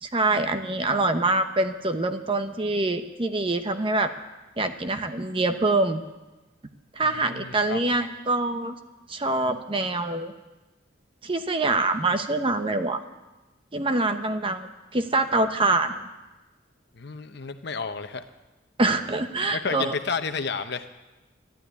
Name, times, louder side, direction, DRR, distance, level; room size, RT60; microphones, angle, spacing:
voice 1, 0.0-4.1 4.6-6.0 6.9-8.8 9.1-10.3 11.2-13.0 13.7-16.1 18.8-19.9, right 2 dB, 30° right, 8 dB, 0.9 m, -25 dB
voice 2, 7.0-7.9 16.9-18.2 19.5-20.9, left 5 dB, 60° left, 9 dB, 0.9 m, -31 dB
12.5 x 12.0 x 9.5 m, 1.1 s
head